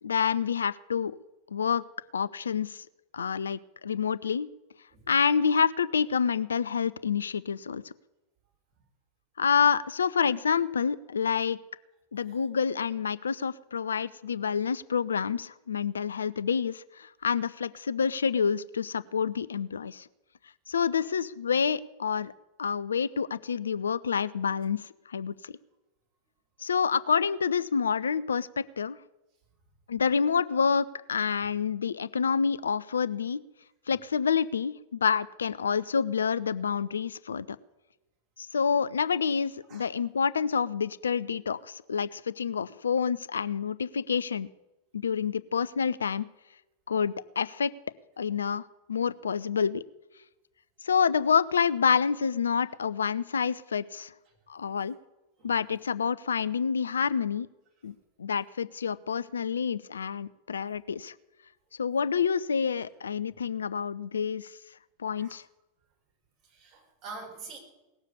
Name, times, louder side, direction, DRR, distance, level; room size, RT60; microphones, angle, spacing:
voice 1, 0.0-1.2 1.5-1.8 2.1-2.9 3.1-4.5 5.1-7.9 9.4-11.6 12.1-20.1 20.7-22.3 22.6-24.8 25.1-25.6 26.6-29.0 29.9-33.4 33.9-37.5 38.4-44.5 44.9-46.3 46.9-47.7 48.2-49.8 50.8-54.1 54.5-55.0 55.4-57.5 57.8-57.9 58.2-61.1 61.8-64.5 65.0-65.4, left 6 dB, 70° left, 16 dB, 0.4 m, -28 dB
voice 2, 66.5-67.6, right 4 dB, 40° right, 0 dB, 5.1 m, -45 dB
18.5 x 7.4 x 9.6 m, 1.0 s
figure-of-eight pair, 90°, 0 cm